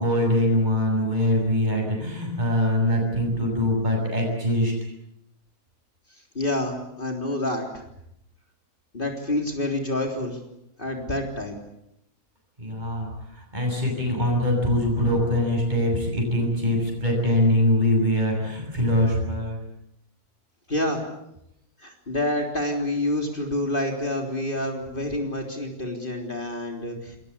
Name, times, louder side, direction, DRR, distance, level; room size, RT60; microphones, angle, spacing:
voice 1, 0.0-4.7 12.6-19.6, left 1 dB, 25° right, 0 dB, 7.0 m, -23 dB
voice 2, 6.1-7.8 8.9-10.4 10.8-11.6 20.7-21.0 21.8-27.2, left 1 dB, 30° left, 2 dB, 3.8 m, -28 dB
27.5 x 21.5 x 8.5 m, 0.79 s
omnidirectional pair, 1.7 m